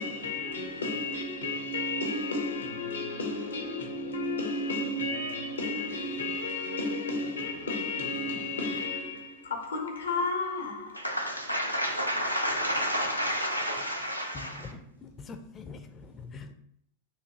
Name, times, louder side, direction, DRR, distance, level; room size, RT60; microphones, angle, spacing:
voice 1, 0.0-11.0, left 2 dB, 70° left, 0.9 m, -32 dB
voice 2, 10.9-14.7, equal, 90° right, 0.7 m, -30 dB
voice 3, 14.3-16.5, left 4 dB, 25° left, 0.6 m, -44 dB
6.7 x 2.7 x 2.9 m
figure-of-eight pair, 90°, 0 cm